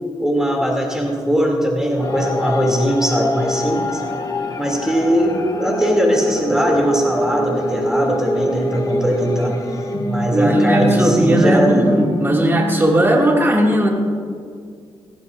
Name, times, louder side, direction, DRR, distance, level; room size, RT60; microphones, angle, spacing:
voice 1, 0.2-4.0 4.6-9.6 10.1-11.8, equal, 5° right, -1 dB, 2.9 m, -20 dB
sound 1, 2.0-12.7, equal, 40° left, 1.5 m, -24 dB
voice 2, 10.3-13.9, right 1 dB, 20° right, -1 dB, 2.5 m, -16 dB
18.5 x 14.5 x 2.6 m, 2.2 s
cardioid pair, 90°, 10 cm